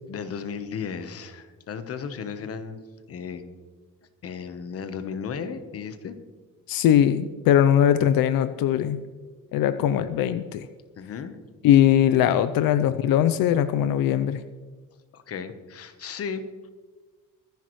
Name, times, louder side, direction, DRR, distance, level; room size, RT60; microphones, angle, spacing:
voice 1, 0.1-2.8 3.1-3.4 4.2-6.2 11.0-11.4 15.1-16.5, left 6 dB, 45° left, 9 dB, 1.1 m, -35 dB
voice 2, 6.7-9.0 9.5-10.7 11.6-14.4, left 10 dB, 80° left, 12 dB, 0.7 m, -20 dB
24.5 x 10.5 x 3.2 m, 1.4 s
cardioid pair, 150°, 34 cm